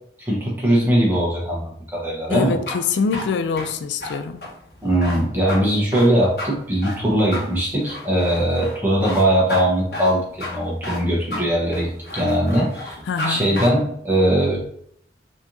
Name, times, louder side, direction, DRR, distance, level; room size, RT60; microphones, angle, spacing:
voice 1, 0.2-2.6 4.8-13.0 13.3-14.7, right 1 dB, 10° right, 1.0 m, -20 dB
voice 2, 2.3-4.4 13.1-13.5, left 5 dB, 80° left, 0.3 m, -24 dB
sound 1, 2.4-13.3 13.5-13.7, left 1 dB, 55° left, 1.2 m, -31 dB
4.2 x 2.9 x 2.6 m
head